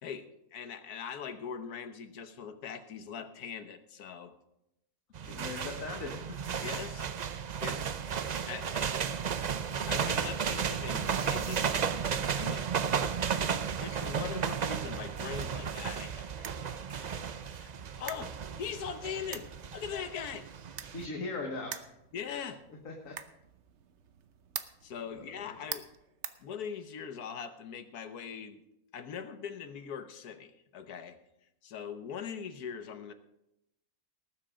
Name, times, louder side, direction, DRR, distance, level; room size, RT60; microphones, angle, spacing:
voice 1, 0.0-4.4 6.6-7.1 7.6-7.8 8.5-8.9 9.9-11.7 12.4-12.6 13.8-17.7 18.0-20.5 22.1-22.6 24.8-25.9 26.4-28.6 28.9-31.2 31.6-33.1, left 7 dB, 85° left, 9 dB, 1.5 m, -41 dB
sound 1, 5.1-21.1, right 7 dB, 80° right, 0.3 m, -34 dB
voice 2, 5.3-6.2 20.9-21.9 22.9-23.2 25.1-25.2 25.5-25.6, left 3 dB, 60° left, 1 dB, 1.8 m, -39 dB
sound 2, 16.4-27.1, right 8 dB, 55° right, 0.9 m, -48 dB
18.5 x 7.7 x 5.0 m, 0.86 s
omnidirectional pair, 1.6 m